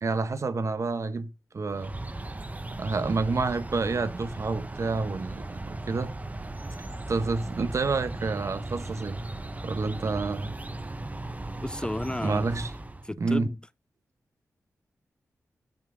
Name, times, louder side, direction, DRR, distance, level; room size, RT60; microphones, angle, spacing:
voice 1, 0.0-1.9 2.8-6.1 7.1-9.2 9.6-10.6 12.2-12.7 13.2-13.5, right 4 dB, 55° right, 1.0 m, -29 dB
sound 1, 1.7-13.1, right 2 dB, 25° right, 1.0 m, -37 dB
voice 2, 11.6-12.5 13.0-13.6, left 1 dB, 15° left, 0.4 m, -32 dB
9.0 x 3.7 x 6.1 m
cardioid pair, 50°, 6 cm